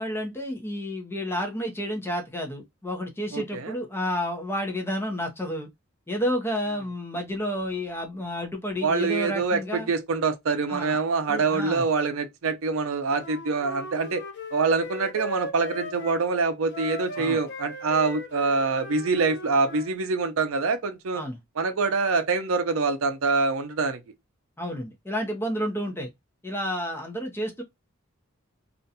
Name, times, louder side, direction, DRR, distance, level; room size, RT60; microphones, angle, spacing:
voice 1, 0.0-5.7 6.1-9.9 10.7-11.0 11.3-11.8 17.2-17.4 21.1-21.4 24.6-26.1 26.4-27.6, equal, 10° left, 0.6 m, -30 dB
voice 2, 3.3-3.7 8.8-14.2 14.5-21.2 21.6-24.0, right 4 dB, 70° right, 0.5 m, -25 dB
Wind instrument woodwind instrument, 13.1-16.2 16.7-19.9, left 2 dB, 55° left, 0.6 m, -38 dB
2.5 x 2.2 x 2.7 m
head